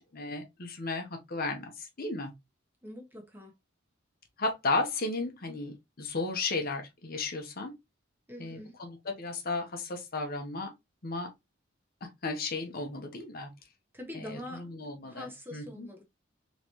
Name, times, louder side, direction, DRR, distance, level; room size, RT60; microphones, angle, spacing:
voice 1, 0.0-2.3 4.4-7.7 8.4-10.7 11.0-11.3 12.0-13.5 14.1-15.9, left 3 dB, 50° left, 0.9 m, -34 dB
voice 2, 2.8-3.5 8.3-8.7 13.9-14.7 15.1-16.0, left 1 dB, 10° right, 1.1 m, -44 dB
3.9 x 3.1 x 3.0 m
head